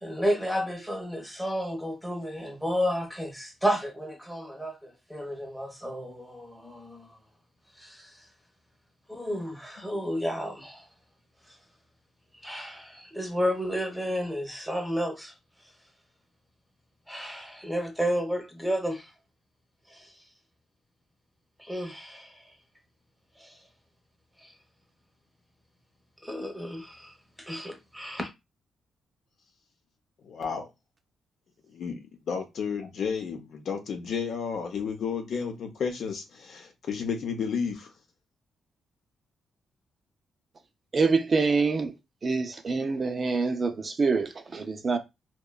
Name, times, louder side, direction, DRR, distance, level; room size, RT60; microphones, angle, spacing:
voice 1, 0.0-7.1 7.8-8.2 9.1-10.9 11.5-11.6 12.4-15.3 17.1-19.1 19.9-20.1 21.6-22.4 23.4-23.6 24.4-24.5 26.2-28.3, equal, ahead, 0.7 m, -32 dB
voice 2, 30.2-30.7 31.7-37.9, left 6 dB, 65° left, 0.6 m, -32 dB
voice 3, 40.9-41.9 42.2-45.0, right 4 dB, 40° right, 0.4 m, -26 dB
2.8 x 2.2 x 2.2 m
cardioid pair, 95°, 0 cm